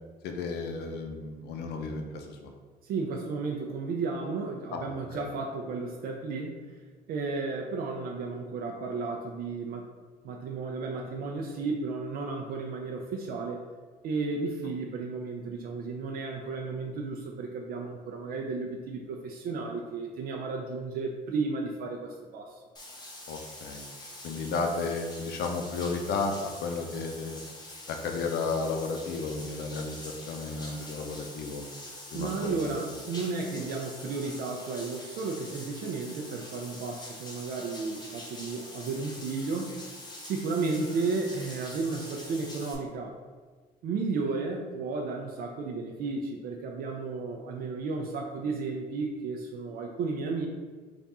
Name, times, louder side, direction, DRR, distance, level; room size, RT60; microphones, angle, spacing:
voice 1, 0.2-2.5 4.7-5.3 23.3-23.8 24.2-27.4 27.9-31.6 32.1-32.8, left 4 dB, 75° left, 4 dB, 0.6 m, -33 dB
voice 2, 2.8-6.6 7.1-9.9 10.2-13.6 14.0-22.6 32.1-39.9 40.2-43.1 43.8-50.5, right 4 dB, 65° right, 0 dB, 0.5 m, -33 dB
Bathtub (filling or washing), 22.8-42.8, left 1 dB, 25° left, 0.8 m, -45 dB
3.5 x 2.5 x 4.1 m, 1.4 s
cardioid pair, 110°, 17 cm